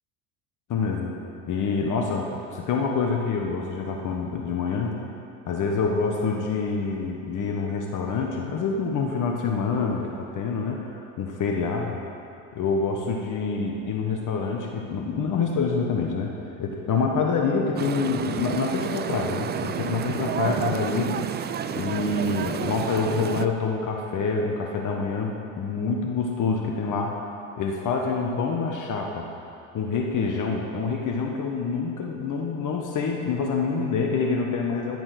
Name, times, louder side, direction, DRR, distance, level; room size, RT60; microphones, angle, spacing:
voice 1, 0.7-1.2 1.5-5.0 5.5-11.9 12.5-21.2 21.7-27.3 27.6-29.3 29.7-35.0, left 4 dB, 45° left, 1 dB, 1.4 m, -26 dB
sound 1, 17.8-23.5, right 8 dB, 25° right, 0.4 m, -30 dB
11.5 x 7.7 x 6.0 m, 2.8 s
supercardioid pair, 90°, 43 cm